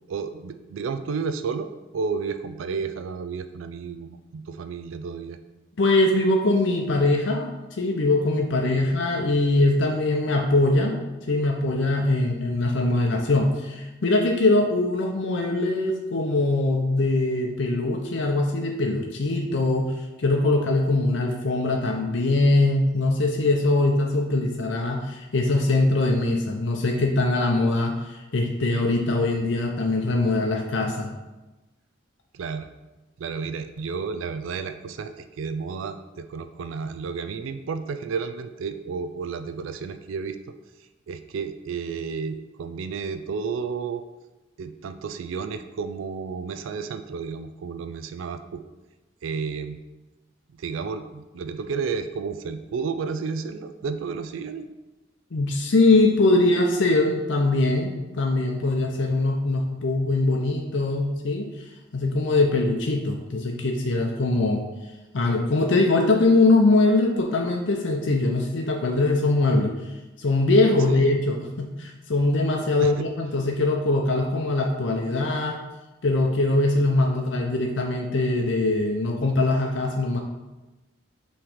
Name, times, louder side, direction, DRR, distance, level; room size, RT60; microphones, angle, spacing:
voice 1, 0.1-5.4 8.8-8.9 32.3-32.7 33.2-40.5 41.1-44.0 44.6-48.6 49.2-49.8 50.6-54.7 70.9-71.1 72.8-73.1, right 5 dB, 85° right, 9 dB, 0.4 m, -32 dB
voice 2, 5.8-11.0 11.3-31.1 55.3-61.7 61.9-64.6 65.1-69.9 70.2-75.6 76.0-80.2, left 2 dB, 70° left, 1 dB, 0.6 m, -22 dB
6.0 x 3.2 x 5.0 m, 1.1 s
head